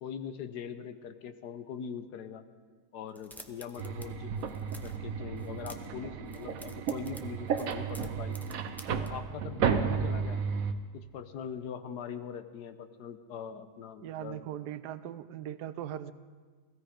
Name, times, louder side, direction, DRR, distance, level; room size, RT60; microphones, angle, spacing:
voice 1, 0.0-2.4 2.9-4.5 4.8-8.4 8.9-10.4 10.9-14.5, left 7 dB, 85° left, 10 dB, 1.4 m, -42 dB
sound 1, 3.1-4.1 4.3-5.0 5.4-6.0 6.3-9.1, equal, 5° left, 0.3 m, -50 dB
sound 2, 3.8-10.7, right 6 dB, 65° right, 1.2 m, -33 dB
voice 2, 14.0-16.1, right 11 dB, 85° right, 14 dB, 1.2 m, -39 dB
16.5 x 15.5 x 5.1 m, 1.5 s
omnidirectional pair, 1.7 m